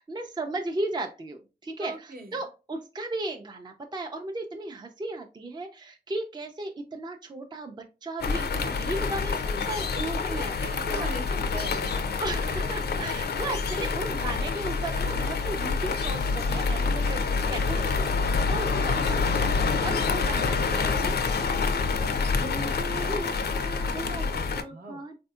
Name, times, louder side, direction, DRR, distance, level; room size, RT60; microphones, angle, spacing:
voice 1, 0.0-10.5 10.9-11.5 11.8-11.9 12.2-21.5 22.1-24.1 24.5-25.1, right 2 dB, 25° right, 4 dB, 0.4 m, -36 dB
voice 2, 1.8-2.4 9.9-12.1 17.7-18.2 23.9-25.0, right 2 dB, 60° right, 4 dB, 0.8 m, -39 dB
sound 1, 8.2-24.6, left 4 dB, 70° left, 0.4 m, -27 dB
3.5 x 2.6 x 2.3 m, 0.30 s
cardioid pair, 55°, 18 cm